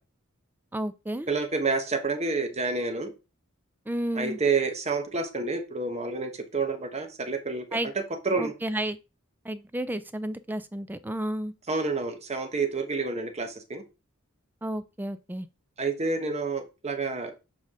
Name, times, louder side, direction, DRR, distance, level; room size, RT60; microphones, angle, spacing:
voice 1, 0.7-1.3 3.9-4.4 7.7-7.9 8.4-9.0 9.4-11.5 14.6-15.5, right 1 dB, 10° right, 0.4 m, -32 dB
voice 2, 1.3-3.1 4.1-7.7 7.9-8.5 11.7-13.8 15.8-17.3, right 4 dB, 30° right, 1.2 m, -29 dB
7.4 x 4.8 x 3.7 m
head